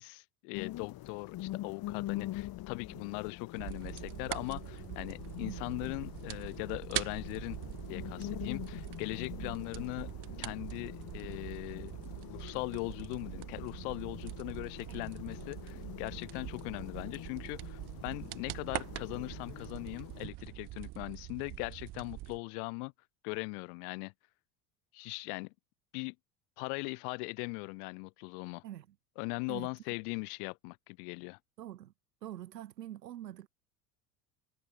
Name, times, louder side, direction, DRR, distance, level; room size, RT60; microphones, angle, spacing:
voice 1, 0.0-7.6 7.9-10.1 10.4-12.0 12.3-22.9 23.2-24.1 24.9-25.5 25.9-26.1 26.6-28.6 29.2-31.4, left 38 dB, 65° left, 1.6 m, -40 dB
sound 1, 0.5-20.3, left 16 dB, 50° left, 1.8 m, -45 dB
sound 2, 3.5-22.4, right 17 dB, 55° right, 3.4 m, -43 dB
voice 2, 28.6-29.0 29.5-29.7 31.6-31.9 32.2-33.5, right 12 dB, 90° right, 2.4 m, -45 dB
hypercardioid pair, 85°, 47 cm